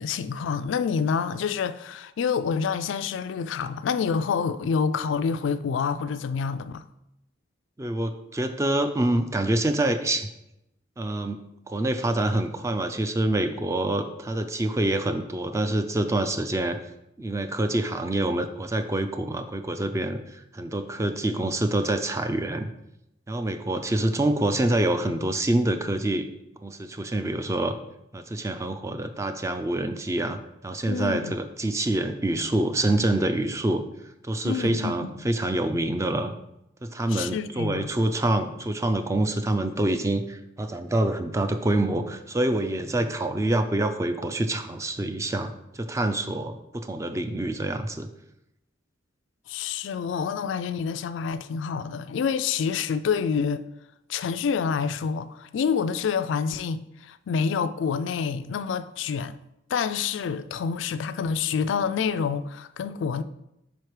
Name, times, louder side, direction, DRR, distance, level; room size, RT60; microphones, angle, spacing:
voice 1, 0.0-6.8 30.9-31.3 34.4-35.1 37.1-37.9 49.5-53.6 54.1-59.4 59.7-63.2, left 6 dB, 75° left, 0.3 m, -27 dB
voice 2, 7.8-10.3 11.0-11.4 11.7-16.8 17.2-22.7 23.3-26.3 26.6-27.8 28.1-30.4 30.6-33.8 34.2-36.3 36.8-48.1, right 1 dB, 15° right, 0.4 m, -26 dB
5.1 x 4.6 x 4.8 m
head